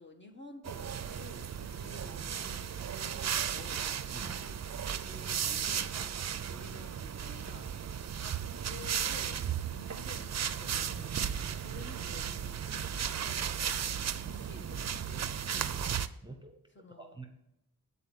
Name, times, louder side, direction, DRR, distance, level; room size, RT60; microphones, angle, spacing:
voice 1, 0.0-3.8 4.2-5.9 6.5-7.7 8.1-8.4 8.7-13.5 14.2-15.2 16.7-17.2, left 2 dB, 30° left, 3 dB, 1.5 m, -51 dB
sound 1, 0.6-16.1, right 8 dB, 45° right, 0.5 m, -35 dB
voice 2, 15.5-16.6 17.0-17.3, right 3 dB, 15° right, 5 dB, 0.9 m, -47 dB
9.3 x 4.3 x 7.2 m, 0.86 s
wide cardioid pair, 80°, 36 cm